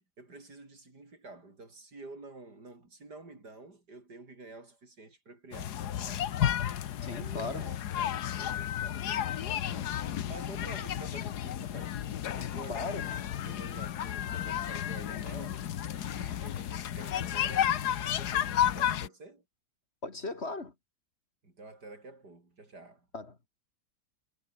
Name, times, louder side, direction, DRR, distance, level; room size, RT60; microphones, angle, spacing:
voice 1, 0.0-6.4 7.0-12.0 12.3-15.6 15.9-19.4 21.4-23.1, right 3 dB, 75° right, 5.8 m, -50 dB
sound 1, 5.5-19.1, left 10 dB, 70° left, 1.5 m, -32 dB
voice 2, 7.0-7.7 12.7-13.2 20.0-20.7 23.1-23.5, left 3 dB, 40° left, 2.4 m, -38 dB
omnidirectional pair, 1.8 m